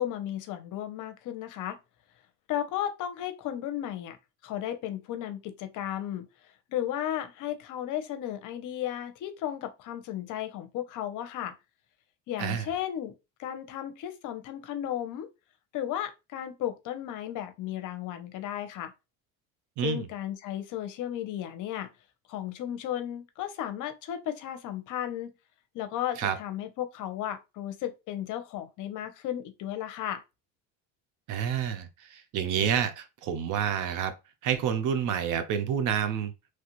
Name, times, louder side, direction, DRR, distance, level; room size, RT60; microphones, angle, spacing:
voice 1, 0.0-1.8 2.5-4.2 4.4-6.3 6.7-11.5 12.3-13.1 13.4-15.3 15.7-18.9 19.8-21.9 22.3-25.3 25.7-30.2, left 11 dB, 55° left, 0.7 m, -34 dB
voice 2, 19.8-20.1 26.2-26.4 31.3-34.1 34.4-36.3, right 8 dB, 55° right, 0.7 m, -28 dB
3.1 x 2.4 x 3.0 m
supercardioid pair, 110°, 37 cm